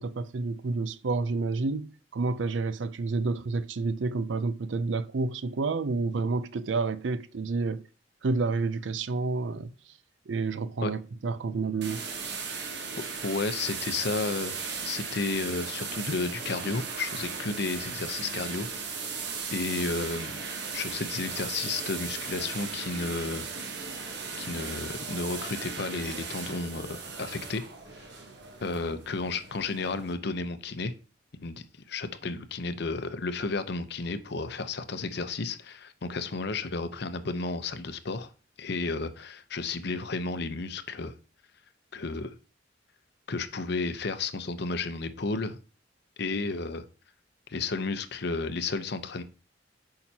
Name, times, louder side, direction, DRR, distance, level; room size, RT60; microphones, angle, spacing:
voice 1, 0.0-7.9 8.2-9.7 10.3-12.0, right 3 dB, 80° right, 0.5 m, -29 dB
sound 1, 11.8-30.1, right 5 dB, 65° right, 1.2 m, -37 dB
voice 2, 13.2-18.7 18.9-19.1 19.5-20.4 20.7-23.5 24.4-27.7 28.0-28.1 28.6-30.9 31.4-38.3 38.6-41.1 41.9-42.4 43.3-45.6 46.2-46.8 47.5-49.2, left 3 dB, 60° left, 0.7 m, -32 dB
8.8 x 5.7 x 2.8 m
head